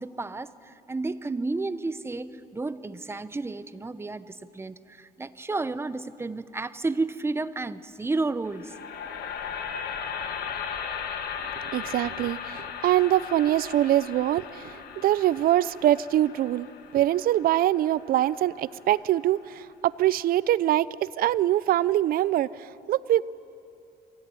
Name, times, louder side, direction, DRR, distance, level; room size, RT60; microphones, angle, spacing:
voice 1, 0.0-8.7, right 3 dB, 15° right, 14 dB, 0.7 m, -32 dB
sound 1, 8.4-18.6, left 7 dB, 65° left, 1.8 m, -37 dB
voice 2, 11.6-16.7 16.9-23.2, right 13 dB, 60° right, 19 dB, 0.5 m, -24 dB
22.5 x 17.5 x 9.1 m, 2.6 s
cardioid pair, 110°, 17 cm